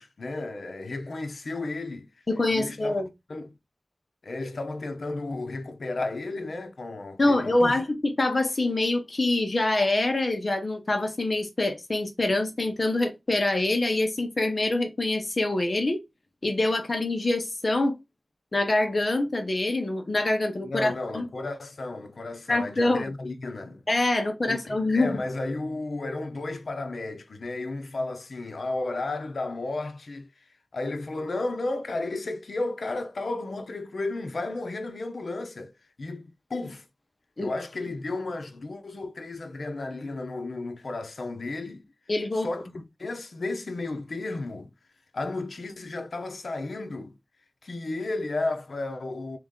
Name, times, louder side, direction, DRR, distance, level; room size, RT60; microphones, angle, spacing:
voice 1, 0.0-2.1 2.5-3.0 3.3-3.6 4.2-7.8 20.6-23.8 24.5-30.4 30.7-35.7 36.0-36.9 37.4-41.8 42.3-44.7 45.1-47.2 47.6-49.4, left 2 dB, 75° left, 0.8 m, -33 dB
voice 2, 2.3-3.1 7.2-16.0 16.4-18.0 18.5-21.2 22.5-23.1 23.9-25.2 37.4-37.5 42.1-42.5, left 2 dB, 45° left, 1.1 m, -25 dB
3.6 x 3.0 x 3.8 m
wide cardioid pair, 65°, 0 cm